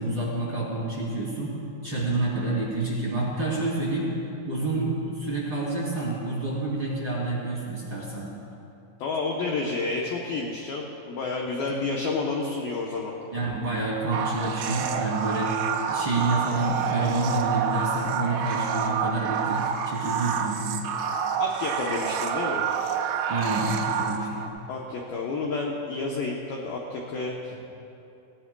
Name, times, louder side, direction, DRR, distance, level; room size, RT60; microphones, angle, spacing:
voice 1, 0.0-1.5 1.8-4.1 4.4-8.3 13.3-15.5 15.9-20.8 23.3-24.5, right 2 dB, 35° right, -7 dB, 2.6 m, -28 dB
voice 2, 9.0-13.1 21.4-22.6 24.7-27.7, left 3 dB, 85° left, -2 dB, 2.0 m, -30 dB
sound 1, 14.1-24.5, right 7 dB, 75° right, 2.9 m, -28 dB
19.5 x 18.0 x 2.3 m, 2.8 s
omnidirectional pair, 5.6 m